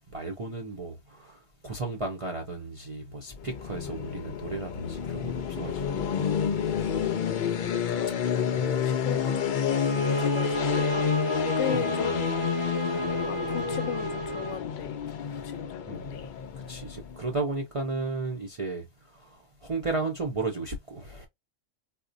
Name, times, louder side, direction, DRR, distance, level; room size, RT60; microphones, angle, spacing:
voice 1, 0.1-6.1 8.6-9.0 11.8-12.1 15.3-15.4 15.9-16.3 16.7-21.3, right 3 dB, 40° right, 0.5 m, -34 dB
sound 1, 3.4-17.3, left 7 dB, 60° left, 0.5 m, -29 dB
voice 2, 7.0-9.6 10.2-11.2 11.6-12.6 13.3-15.0 15.4-16.3, left 10 dB, 75° left, 0.9 m, -38 dB
sound 2, 9.7-14.7, right 2 dB, 20° right, 0.8 m, -32 dB
4.1 x 2.1 x 2.5 m
omnidirectional pair, 1.3 m